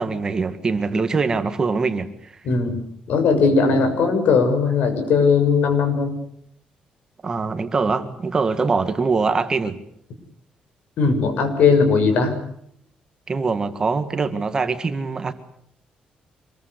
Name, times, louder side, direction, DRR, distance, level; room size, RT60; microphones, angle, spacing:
voice 1, 0.0-2.3 7.2-9.8 13.3-15.3, right 4 dB, 25° right, 9 dB, 1.9 m, -23 dB
voice 2, 2.4-2.8 3.1-6.2 11.0-12.4, left 5 dB, 70° left, 7 dB, 6.5 m, -18 dB
26.5 x 22.0 x 8.0 m, 0.69 s
cardioid pair, 155°, 3 cm